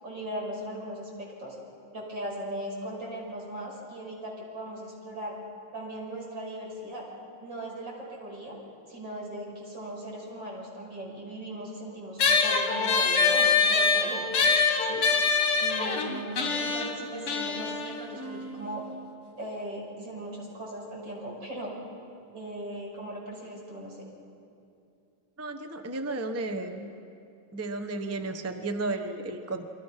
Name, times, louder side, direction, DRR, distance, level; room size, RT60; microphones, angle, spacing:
voice 1, 0.0-1.6 1.9-5.4 5.7-7.0 7.4-8.6 8.9-14.3 14.8-15.1 15.6-18.9 19.4-21.7 22.3-24.1, right 1 dB, 55° right, -3 dB, 6.7 m, -38 dB
sound 1, 12.2-19.0, left 5 dB, 85° left, 2.8 m, -25 dB
voice 2, 25.4-26.9 27.5-29.7, right 2 dB, 20° right, 7 dB, 0.4 m, -33 dB
29.5 x 24.0 x 5.7 m, 2.6 s
omnidirectional pair, 2.4 m